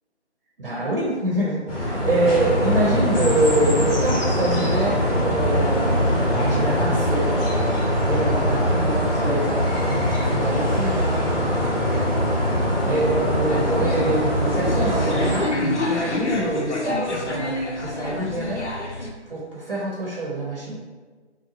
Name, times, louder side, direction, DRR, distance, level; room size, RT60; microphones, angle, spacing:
voice 1, 0.6-6.0 6.3-7.4 8.0-12.4 12.8-18.7 19.3-20.7, right 1 dB, 50° right, -4 dB, 0.9 m, -26 dB
sound 1, 1.7-15.4, equal, 55° left, 1.3 m, -22 dB
sound 2, 13.5-19.1, left 2 dB, 80° left, 0.8 m, -28 dB
5.7 x 2.3 x 2.8 m, 1.4 s
figure-of-eight pair, 160°, 35 cm